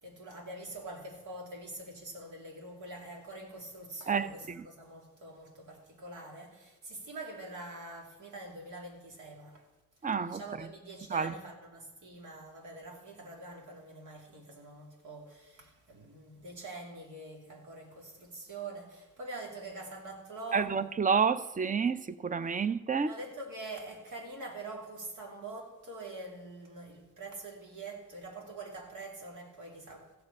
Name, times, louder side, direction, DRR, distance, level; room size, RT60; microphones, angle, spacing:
voice 1, 0.0-9.7 10.3-20.8 23.0-30.1, right 2 dB, 85° right, 2.7 m, -45 dB
voice 2, 10.0-10.4 11.1-11.3 20.5-23.1, right 6 dB, 25° right, 0.6 m, -29 dB
15.0 x 7.6 x 5.4 m
cardioid pair, 80°, 30 cm